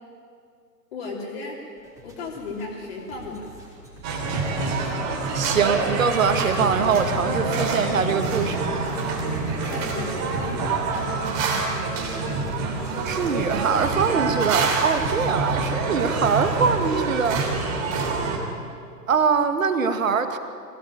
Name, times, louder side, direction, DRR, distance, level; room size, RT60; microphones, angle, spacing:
voice 1, 0.9-1.7 2.0-3.5 9.0-10.7, left 3 dB, 35° left, -2 dB, 3.5 m, -35 dB
sound 1, 1.8-13.8, right 1 dB, 5° right, 4.5 m, -45 dB
sound 2, 4.0-18.4, right 4 dB, 25° right, 3.4 m, -26 dB
voice 2, 5.3-8.6 13.0-17.4 19.1-20.4, right 5 dB, 50° right, 8 dB, 2.0 m, -23 dB
Boom, 6.4-9.6, left 1 dB, 85° left, 4.1 m, -35 dB
23.0 x 17.5 x 9.3 m, 2.4 s
figure-of-eight pair, 130°, 49 cm